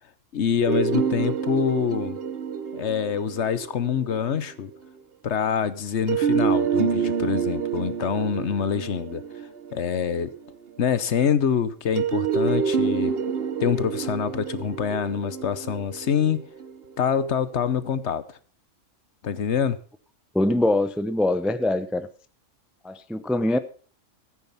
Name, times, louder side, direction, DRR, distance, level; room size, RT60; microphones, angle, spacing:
voice 1, 0.3-2.2 2.7-4.7 5.2-9.2 9.7-10.3 10.8-13.1 13.6-16.4 17.0-18.2 19.2-19.8, left 7 dB, 60° left, 1.2 m, -25 dB
sound 1, 0.7-4.5 6.1-10.6 12.0-17.2, right 6 dB, 50° right, 1.1 m, -27 dB
voice 2, 20.3-22.1 22.8-23.6, left 1 dB, ahead, 0.5 m, -23 dB
14.5 x 8.9 x 5.6 m
omnidirectional pair, 1.3 m